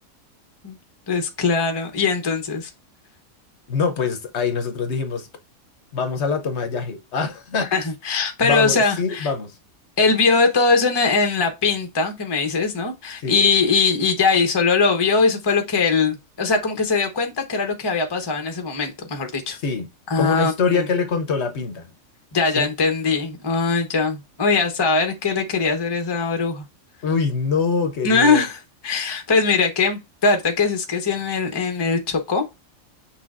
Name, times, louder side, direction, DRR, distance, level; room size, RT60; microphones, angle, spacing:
voice 1, 1.1-2.7 7.6-9.3 10.0-19.6 20.1-20.9 22.3-26.6 28.0-32.4, left 4 dB, 25° left, 0.7 m, -21 dB
voice 2, 3.7-5.3 5.9-7.7 8.4-9.6 13.2-13.4 19.6-19.9 20.2-21.9 22.6-22.7 27.0-28.4, left 5 dB, 60° left, 1.0 m, -24 dB
6.1 x 3.3 x 2.4 m
omnidirectional pair, 1.4 m